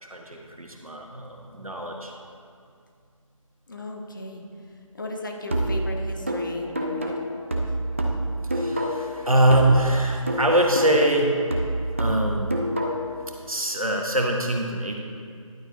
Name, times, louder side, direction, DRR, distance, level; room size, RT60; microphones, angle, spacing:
voice 1, 0.0-2.1 8.5-11.4 12.0-12.6 13.5-15.0, right 1 dB, 85° right, 1 dB, 1.4 m, -23 dB
voice 2, 3.7-4.4 4.9-7.2 7.7-7.8, left 1 dB, 35° left, 2 dB, 0.9 m, -36 dB
sound 1, 5.5-9.2 9.5-13.2, right 1 dB, 25° right, 0.5 m, -27 dB
11.0 x 9.0 x 2.9 m, 2.3 s
figure-of-eight pair, 160°, 18 cm